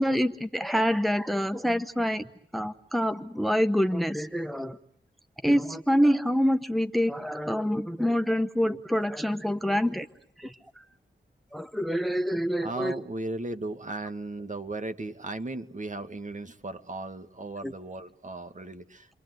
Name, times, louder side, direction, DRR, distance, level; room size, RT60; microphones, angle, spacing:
voice 1, 0.0-2.3 2.5-4.8 5.4-10.1 10.4-10.8 11.5-13.0 17.6-17.7, equal, ahead, 10 dB, 1.1 m, -26 dB
voice 2, 12.6-19.1, right 2 dB, 40° right, 8 dB, 2.1 m, -36 dB
29.0 x 23.0 x 8.0 m, 0.68 s
cardioid pair, 55°, 20 cm